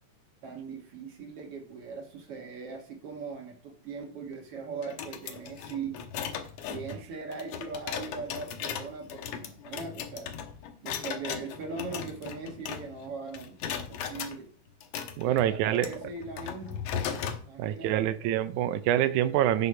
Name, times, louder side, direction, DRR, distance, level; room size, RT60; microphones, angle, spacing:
voice 1, 0.4-6.0 6.7-10.3 10.8-13.6 13.9-14.5 15.2-16.9 17.5-18.1, right 4 dB, 55° right, 2.3 m, -40 dB
sound 1, 4.8-13.1 13.3-14.3 14.8-17.4, left 8 dB, 65° left, 2.0 m, -37 dB
voice 2, 15.2-16.0 17.6-19.7, right 12 dB, 80° right, 2.1 m, -26 dB
8.5 x 6.5 x 5.6 m
omnidirectional pair, 3.5 m